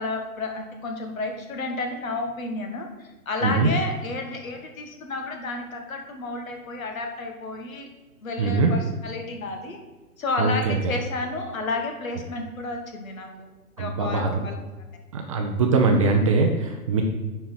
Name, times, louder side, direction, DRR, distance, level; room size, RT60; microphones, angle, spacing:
voice 1, 0.0-7.9 8.2-9.8 10.2-13.5 13.8-14.5, left 3 dB, 60° left, 3 dB, 2.0 m, -31 dB
voice 2, 8.4-8.7 10.4-10.9 13.8-14.4 15.1-17.0, right 3 dB, 20° right, 2 dB, 0.6 m, -22 dB
10.0 x 4.6 x 5.8 m, 1.2 s
hypercardioid pair, 135°, 46 cm